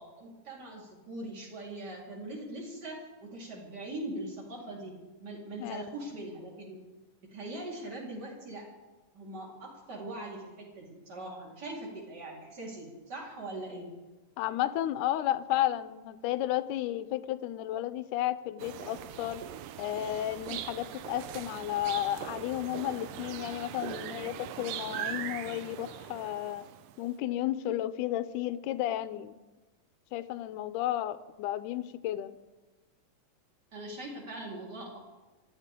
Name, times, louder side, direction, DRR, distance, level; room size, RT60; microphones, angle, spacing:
voice 1, 0.0-6.8 7.3-8.7 9.1-13.9 33.7-35.1, right 1 dB, 30° right, -3 dB, 4.4 m, -41 dB
voice 2, 14.4-19.4 19.8-26.6 27.0-29.4 30.1-32.3, left 13 dB, 80° left, 13 dB, 2.1 m, -33 dB
sound 1, 18.6-27.0, right 11 dB, 85° right, 2.3 m, -41 dB
26.5 x 14.0 x 3.7 m, 1.2 s
omnidirectional pair, 3.8 m